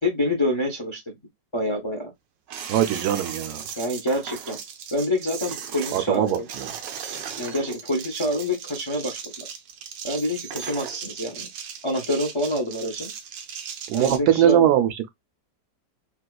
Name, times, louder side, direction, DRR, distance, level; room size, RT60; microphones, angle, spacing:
voice 1, 0.0-1.1 1.5-2.1 3.8-4.6 4.9-6.5 7.4-9.5 10.0-11.5 11.8-13.1 13.9-14.6, left 1 dB, 45° left, 0.4 m, -27 dB
sound 1, 2.5-14.2, right 7 dB, 90° right, 1.4 m, -37 dB
voice 2, 2.7-3.6 5.9-6.7 13.9-15.1, right 11 dB, 75° right, 1.0 m, -21 dB
3.8 x 2.4 x 2.3 m
omnidirectional pair, 1.9 m